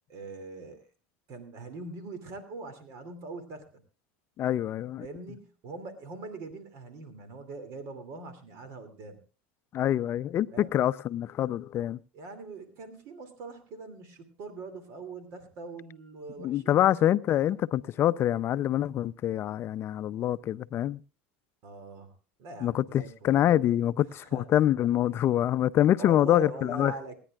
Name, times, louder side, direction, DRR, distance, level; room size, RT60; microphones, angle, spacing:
voice 1, 0.1-0.8 1.3-3.7 5.0-9.2 10.5-10.7 12.1-17.0 17.4-17.6 21.6-22.1 22.4-23.4 24.0-24.4 25.1-25.2 26.0-27.2, right 3 dB, 55° right, 2.7 m, -42 dB
voice 2, 4.4-5.1 9.7-12.0 16.4-21.0 22.6-26.9, left 12 dB, 40° left, 0.6 m, -25 dB
27.5 x 10.0 x 2.4 m
supercardioid pair, 105°, 6 cm